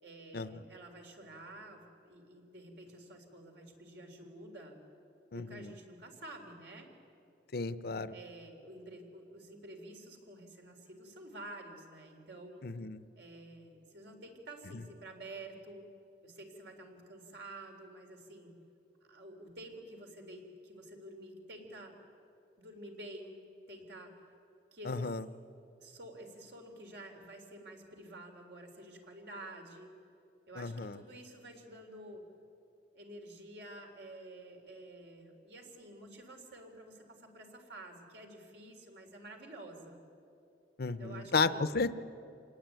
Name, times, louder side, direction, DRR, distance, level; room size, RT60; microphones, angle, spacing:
voice 1, 0.0-4.8 5.3-6.9 8.1-12.7 13.2-15.9 16.2-18.5 19.1-21.9 22.6-23.4 23.7-24.1 24.7-25.1 25.8-29.9 30.5-32.2 32.9-40.0 41.0-41.6, right 1 dB, 75° right, 2 dB, 3.8 m, -50 dB
voice 2, 5.3-5.7 7.5-8.1 12.6-13.0 24.9-25.2 30.6-31.0 40.8-42.0, left 4 dB, 60° left, 13 dB, 0.7 m, -33 dB
27.0 x 19.5 x 9.2 m, 2.7 s
head